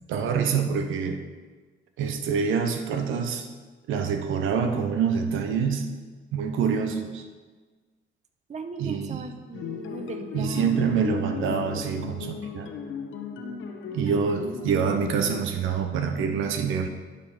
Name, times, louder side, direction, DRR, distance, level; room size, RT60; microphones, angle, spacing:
voice 1, 0.1-1.2 2.0-3.4 3.9-5.9 6.3-7.2 8.8-9.2 10.3-12.7 13.9-16.9, right 6 dB, 85° right, 6 dB, 0.9 m, -26 dB
voice 2, 8.5-10.8, right 4 dB, 35° right, 7 dB, 0.7 m, -38 dB
sound 1, 9.5-15.4, left 7 dB, 80° left, 0.9 m, -36 dB
11.5 x 4.5 x 5.9 m, 1.4 s
cardioid pair, 90°, 20 cm